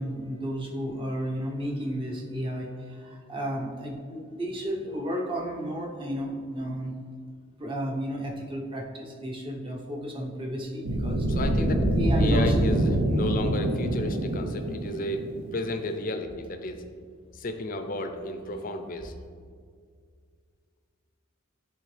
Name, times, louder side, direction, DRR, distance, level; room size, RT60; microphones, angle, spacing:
voice 1, 0.0-6.9 7.6-11.3 11.9-12.7, equal, 25° right, -1 dB, 0.8 m, -33 dB
sound 1, 10.8-15.8, right 1 dB, 85° right, 0.7 m, -25 dB
voice 2, 11.3-11.9 12.2-15.2 15.5-16.8 17.3-19.1, left 2 dB, 40° left, 6 dB, 0.5 m, -33 dB
10.0 x 3.7 x 3.2 m, 2.1 s
head